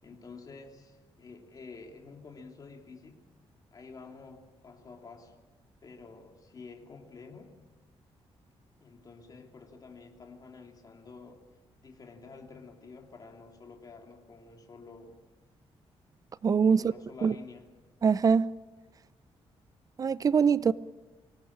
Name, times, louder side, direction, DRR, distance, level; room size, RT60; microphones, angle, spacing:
voice 1, 0.0-3.2 3.7-5.4 5.8-7.6 8.8-11.4 11.8-15.2 16.7-17.7, left 4 dB, 35° left, 3.1 m, -49 dB
voice 2, 16.4-16.9 17.2-17.3 18.0-18.5 20.0-20.7, right 6 dB, 35° right, 0.6 m, -23 dB
24.0 x 18.0 x 8.8 m
cardioid pair, 145°, 10 cm